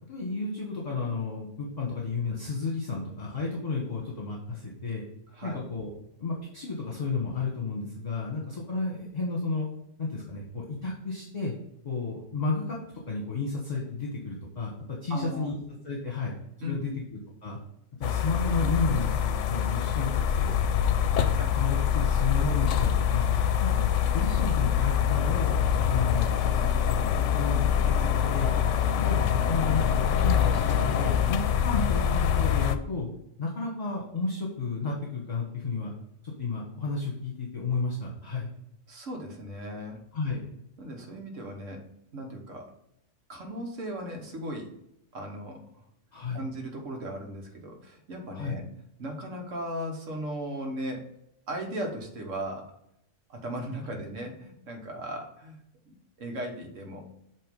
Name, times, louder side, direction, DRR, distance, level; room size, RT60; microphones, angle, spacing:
voice 1, 0.1-5.0 5.4-5.9 6.2-9.7 10.0-11.5 11.8-12.7 13.1-15.6 15.8-16.3 16.6-16.9 17.4-17.6 18.0-21.3 21.5-23.9 24.1-25.5 25.9-27.8 28.3-28.5 28.9-29.2 29.5-33.1 33.4-35.9 36.2-38.5 40.1-40.5 46.1-46.4 48.3-48.6, left 4 dB, 35° left, -2 dB, 1.2 m, -32 dB
voice 2, 15.1-15.5 16.6-16.8 21.4-21.5 38.9-40.0 40.8-41.8 42.1-42.7 43.3-44.7 45.1-45.6 46.3-48.6 49.0-51.1 51.5-52.8 53.3-57.0, right 1 dB, 80° right, 2 dB, 1.6 m, -37 dB
sound 1, 18.0-32.8, left 8 dB, 75° left, 0.9 m, -25 dB
7.8 x 3.2 x 5.2 m, 0.78 s
omnidirectional pair, 1.3 m